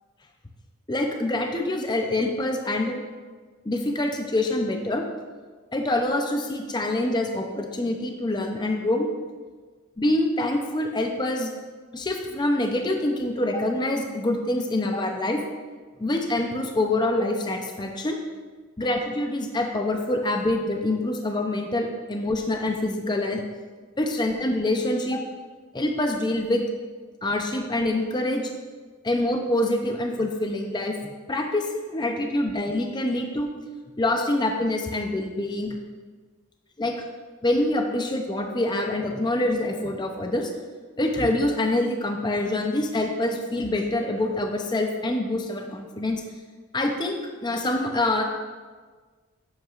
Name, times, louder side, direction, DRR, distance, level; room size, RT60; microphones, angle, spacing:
voice 1, 0.9-3.0 3.7-5.0 5.7-9.1 10.0-11.5 11.9-15.4 16.0-18.2 18.8-23.4 24.0-25.2 25.7-26.6 27.2-28.5 29.0-33.5 34.0-35.8 36.8-36.9 37.4-40.5 41.0-46.2 46.7-48.2, left 1 dB, 20° left, 3 dB, 0.6 m, -25 dB
10.5 x 8.0 x 2.5 m, 1.5 s
head